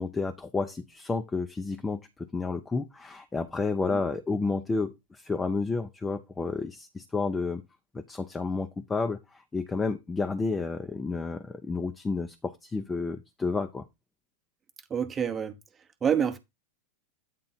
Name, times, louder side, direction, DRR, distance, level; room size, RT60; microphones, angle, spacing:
voice 1, 0.0-7.6 7.9-13.8, left 3 dB, 10° left, 0.7 m, -31 dB
voice 2, 14.9-15.6 16.0-16.4, right 8 dB, 20° right, 1.0 m, -27 dB
9.1 x 3.8 x 4.1 m
figure-of-eight pair, 90°, 0 cm